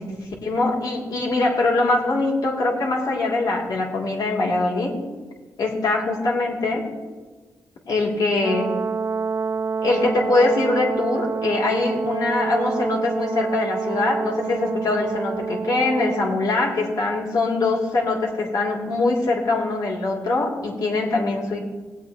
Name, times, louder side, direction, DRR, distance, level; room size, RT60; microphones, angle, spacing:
voice 1, 0.0-5.0 5.6-6.9 7.9-8.8 9.8-21.6, left 2 dB, 70° left, -2 dB, 2.7 m, -23 dB
Brass instrument, 8.4-16.4, right 5 dB, 40° right, 0.3 m, -27 dB
19.0 x 8.2 x 3.0 m, 1.4 s
cardioid pair, 85°, 7 cm